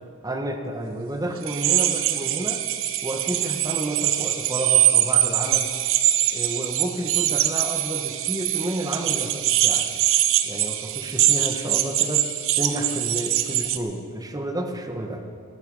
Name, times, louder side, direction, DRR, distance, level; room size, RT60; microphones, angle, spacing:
voice 1, 0.2-2.6 3.0-5.7 6.3-9.9 10.4-12.3 12.6-15.2, right 1 dB, 15° right, 4 dB, 1.3 m, -30 dB
sound 1, 1.4-13.8, right 12 dB, 65° right, 0.9 m, -23 dB
18.0 x 14.0 x 5.5 m, 2.2 s
head